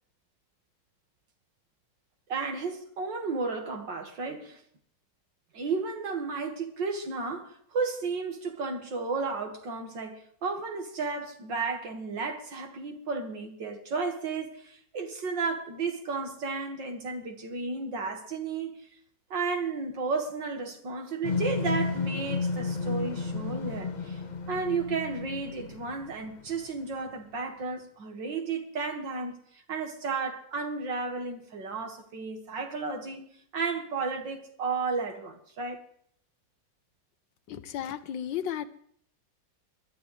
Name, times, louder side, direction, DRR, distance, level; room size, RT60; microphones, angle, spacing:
voice 1, 2.3-4.6 5.5-18.8 19.3-24.2 24.5-29.4 29.7-35.8, right 4 dB, 85° right, 2.6 m, -33 dB
sound 1, 21.2-26.5, left 4 dB, 40° left, 0.6 m, -32 dB
voice 2, 37.5-38.7, left 10 dB, 90° left, 1.6 m, -34 dB
21.5 x 12.0 x 3.3 m
omnidirectional pair, 1.9 m